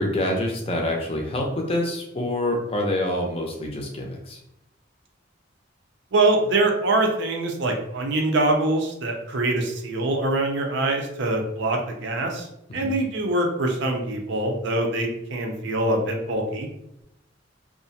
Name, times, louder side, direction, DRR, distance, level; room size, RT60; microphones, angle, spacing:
voice 1, 0.0-4.4 12.7-13.0, left 1 dB, 30° left, 1 dB, 0.5 m, -26 dB
voice 2, 6.1-12.5 12.7-16.7, right 2 dB, 60° right, 2 dB, 0.5 m, -24 dB
2.4 x 2.1 x 2.6 m, 0.80 s
head